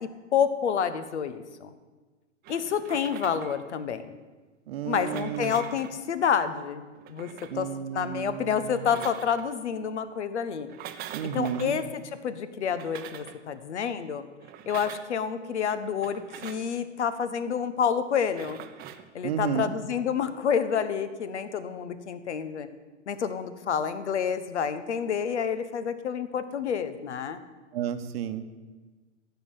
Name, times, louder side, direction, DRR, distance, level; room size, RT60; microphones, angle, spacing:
voice 1, 0.0-1.7 2.5-4.1 4.9-6.8 7.1-7.3 7.5-7.7 7.9-10.7 11.2-14.2 14.7-18.6 19.1-22.7 23.1-27.4, left 7 dB, 70° left, 12 dB, 1.2 m, -29 dB
sound 1, 2.4-3.7 4.8-6.0 6.9-7.6 8.6-9.5 10.6-11.7 12.6-13.4 14.4-15.1 16.0-16.7 18.2-19.1, right 11 dB, 25° right, 0.9 m, -44 dB
voice 2, 4.7-5.6 7.5-9.0 11.1-11.8 19.2-19.7 27.7-28.4, right 8 dB, 55° right, 9 dB, 1.3 m, -32 dB
14.5 x 5.8 x 9.2 m, 1.3 s
figure-of-eight pair, 110°, 36 cm